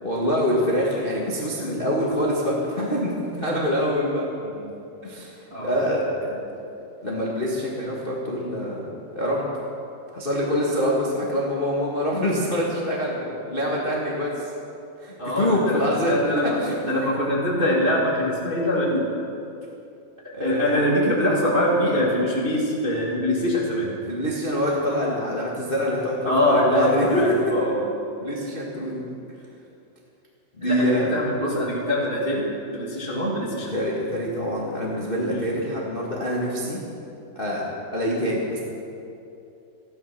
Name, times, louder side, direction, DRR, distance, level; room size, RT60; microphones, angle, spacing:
voice 1, 0.0-4.2 5.0-6.0 7.0-8.9 9.1-9.5 10.1-14.5 15.0-16.1 16.4-16.7 20.3-20.9 24.1-27.2 28.2-29.0 30.6-31.2 33.7-36.9 37.3-37.6 37.9-38.6, equal, 65° left, -4 dB, 0.5 m, -25 dB
voice 2, 15.2-19.1 20.4-24.0 26.2-27.9 30.6-32.5 32.7-33.7 35.3-35.6, left 1 dB, 35° right, -5 dB, 0.8 m, -23 dB
15.0 x 12.5 x 6.0 m, 2.7 s
omnidirectional pair, 4.5 m